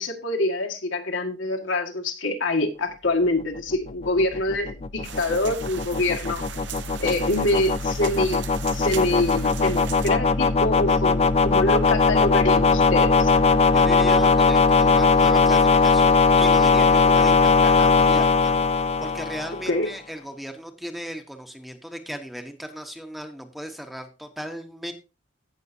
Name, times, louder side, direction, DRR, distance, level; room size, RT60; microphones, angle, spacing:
voice 1, 0.0-6.4 7.0-8.4 8.7-13.3 19.7-19.9, left 2 dB, 75° left, 1.8 m, -25 dB
sound 1, 3.6-19.7, left 4 dB, 30° left, 0.5 m, -20 dB
sound 2, 5.0-10.1, right 8 dB, 65° right, 0.9 m, -38 dB
voice 2, 13.7-24.9, equal, ahead, 1.0 m, -36 dB
16.5 x 6.4 x 2.7 m
head